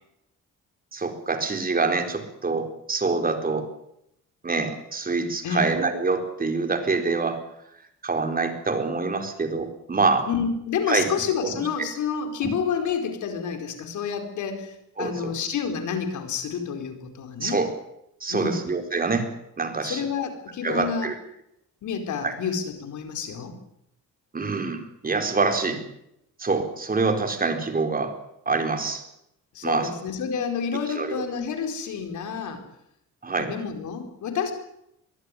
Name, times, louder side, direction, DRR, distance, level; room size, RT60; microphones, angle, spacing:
voice 1, 0.9-3.7 4.4-7.4 8.0-10.3 10.9-11.1 11.4-11.7 15.0-15.3 17.4-17.7 18.2-19.3 19.6-20.0 20.6-21.1 22.2-22.3 24.3-25.8 26.4-28.1 28.5-29.0 29.6-29.9 30.9-31.2 33.2-33.5, right 4 dB, 30° right, 6 dB, 4.2 m, -25 dB
voice 2, 10.3-17.6 18.3-18.6 19.8-21.1 21.8-23.6 29.5-32.6 33.4-34.5, left 6 dB, 75° left, 6 dB, 4.6 m, -29 dB
23.0 x 14.5 x 10.0 m, 0.81 s
cardioid pair, 90°, 30 cm